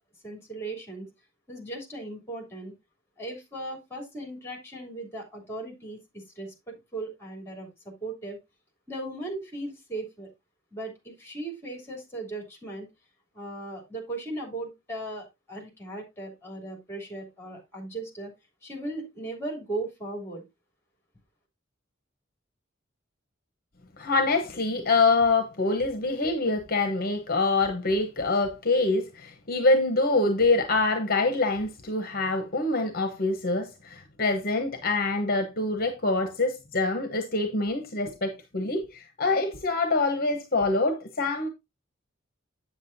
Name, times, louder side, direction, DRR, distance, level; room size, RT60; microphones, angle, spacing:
voice 1, 0.2-1.1 1.5-2.7 3.2-8.4 8.9-10.3 10.7-12.9 13.3-18.3 18.6-20.4, right 2 dB, 10° left, 3.1 m, -37 dB
voice 2, 24.0-41.5, left 3 dB, 45° left, 1.0 m, -25 dB
8.1 x 7.5 x 2.6 m
head